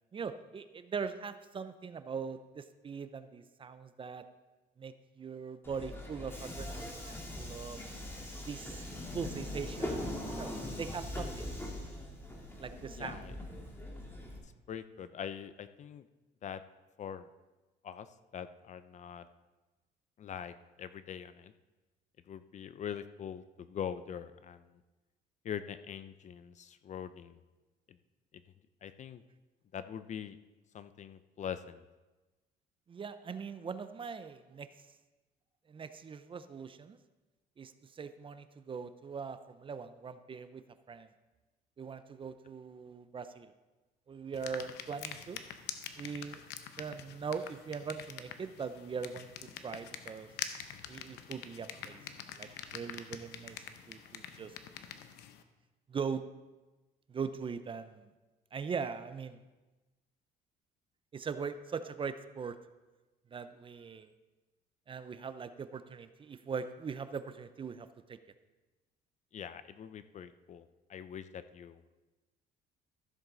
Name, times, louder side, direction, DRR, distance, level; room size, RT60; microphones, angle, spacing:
voice 1, 0.1-4.2 4.8-7.8 8.5-8.8 9.1-10.0 10.3-10.5 10.8-11.5 12.6-13.2 32.9-34.7 35.7-37.0 37.6-40.6 40.9-41.1 41.8-43.5 44.1-45.4 46.0-46.4 46.8-49.3 49.6-50.3 50.9-52.0 52.4-53.6 53.9-54.5 55.9-56.2 57.1-58.1 58.5-59.4 61.1-62.5 63.3-64.1 64.9-68.2, right 6 dB, 30° right, 11 dB, 0.6 m, -41 dB
Subway metro underground, 5.6-14.4, left 1 dB, 15° left, 2.0 m, -41 dB
voice 2, 13.0-13.3 14.7-16.1 16.4-16.6 17.0-17.3 17.8-18.1 18.3-19.3 20.2-21.5 22.3-24.8 25.4-27.4 27.9-28.0 28.8-29.2 29.7-30.4 30.7-31.8 69.3-71.8, left 8 dB, 45° left, 12 dB, 0.6 m, -43 dB
sound 1, 44.3-55.4, left 9 dB, 85° left, 0.8 m, -46 dB
14.0 x 7.3 x 4.0 m, 1.1 s
cardioid pair, 110°, 17 cm